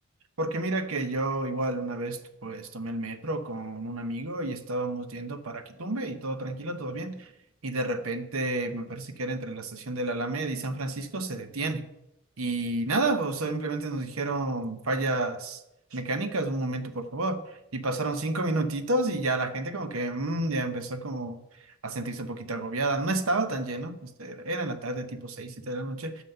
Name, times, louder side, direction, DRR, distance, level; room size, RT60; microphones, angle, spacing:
voice 1, 0.4-7.3 7.6-11.8 12.4-15.6 15.9-21.4 21.8-26.2, right 2 dB, 75° right, 0.9 m, -30 dB
9.3 x 6.3 x 6.7 m
head